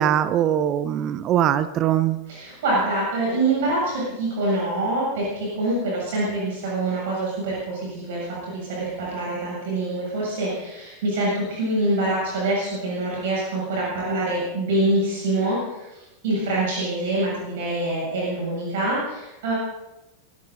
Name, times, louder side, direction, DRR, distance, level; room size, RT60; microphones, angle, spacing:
voice 1, 0.0-2.2, right 10 dB, 35° right, 14 dB, 0.8 m, -21 dB
voice 2, 2.3-19.5, right 2 dB, 55° right, -5 dB, 7.4 m, -25 dB
23.5 x 15.0 x 4.0 m, 0.96 s
figure-of-eight pair, 90°, 0 cm